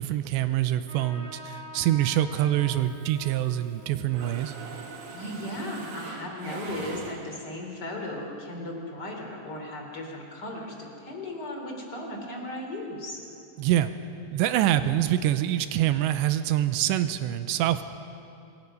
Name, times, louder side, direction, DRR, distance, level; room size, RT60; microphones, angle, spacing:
voice 1, 0.0-4.5 13.6-13.9 14.3-17.8, right 12 dB, 85° right, 11 dB, 2.9 m, -25 dB
Trumpet, 0.8-5.8, left 1 dB, 5° right, 4.5 m, -47 dB
Mechanisms, 2.9-3.8 4.1-7.6, right 4 dB, 55° right, 2.5 m, -42 dB
voice 2, 5.1-13.2, left 1 dB, 25° left, 1 dB, 3.2 m, -36 dB
27.0 x 21.5 x 5.5 m, 2.8 s
omnidirectional pair, 5.2 m